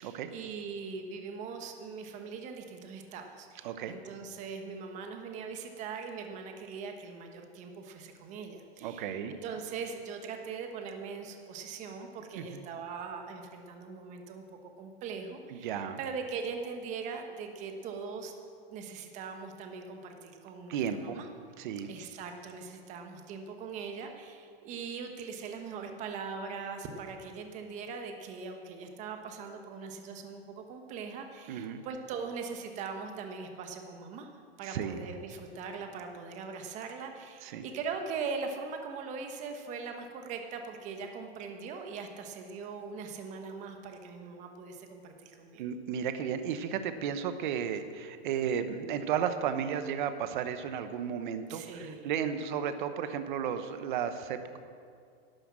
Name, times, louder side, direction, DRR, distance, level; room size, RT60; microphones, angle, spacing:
voice 1, 0.0-18.3 18.7-21.3 21.9-34.3 34.6-45.6 51.5-52.1, right 5 dB, 20° right, 5 dB, 1.2 m, -41 dB
voice 2, 3.6-4.0 8.8-9.3 12.4-12.7 15.5-16.0 20.7-21.2 21.6-21.9 31.5-31.8 34.6-35.0 37.4-37.6 45.6-54.6, right 8 dB, 50° right, 10 dB, 1.0 m, -34 dB
12.0 x 10.0 x 7.5 m, 2.3 s
hypercardioid pair, 160°, 32 cm